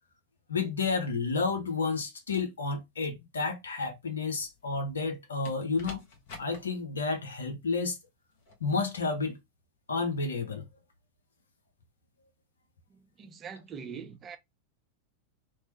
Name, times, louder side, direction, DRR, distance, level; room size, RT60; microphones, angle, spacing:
voice 1, 0.5-6.0 6.4-8.0 8.6-9.4 9.9-10.6, left 4 dB, 70° left, 0.8 m, -31 dB
sound 1, 4.4-5.0 5.4-6.6 8.4-8.6, left 4 dB, 50° left, 1.1 m, -47 dB
voice 2, 12.9-14.4, right 6 dB, 25° right, 0.5 m, -43 dB
3.0 x 2.1 x 3.0 m
figure-of-eight pair, 90°, 0 cm